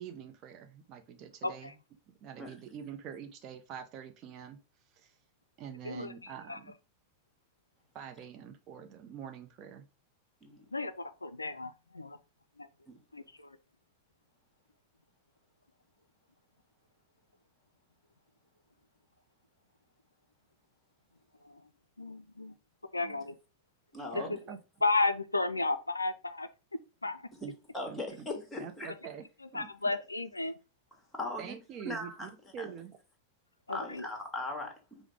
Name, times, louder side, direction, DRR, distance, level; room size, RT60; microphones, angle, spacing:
voice 1, 0.0-1.7 2.2-4.6 5.0-5.1 5.6-6.7 7.9-9.9 24.1-24.6 27.4-27.5 27.9-28.3 28.6-29.2 29.5-29.7 31.4-33.0, right 8 dB, 35° right, 0.6 m, -45 dB
voice 2, 1.4-1.7 5.8-6.6 10.7-12.2 12.6-12.7 13.1-13.6 21.4-21.7 22.0-22.5 22.9-23.4 24.1-24.4 24.8-26.5 27.0-27.3 29.4-30.6 33.7-34.1, left 3 dB, 80° left, 0.3 m, -33 dB
voice 3, 23.9-24.3 27.7-28.9 31.1-31.6 31.8-32.7 33.7-35.0, left 2 dB, 10° left, 1.3 m, -39 dB
4.8 x 2.1 x 4.7 m
figure-of-eight pair, 90°, 0 cm